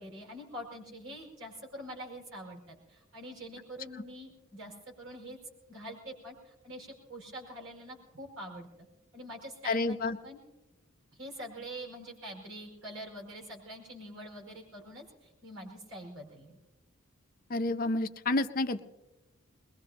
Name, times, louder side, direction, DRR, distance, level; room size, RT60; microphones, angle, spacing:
voice 1, 0.0-5.4 5.7-8.7 9.1-10.4 11.1-16.6, equal, 85° right, -1 dB, 5.4 m, -45 dB
voice 2, 9.6-10.2 17.5-18.8, left 2 dB, 40° left, 10 dB, 0.6 m, -29 dB
22.0 x 21.0 x 2.9 m, 1.0 s
head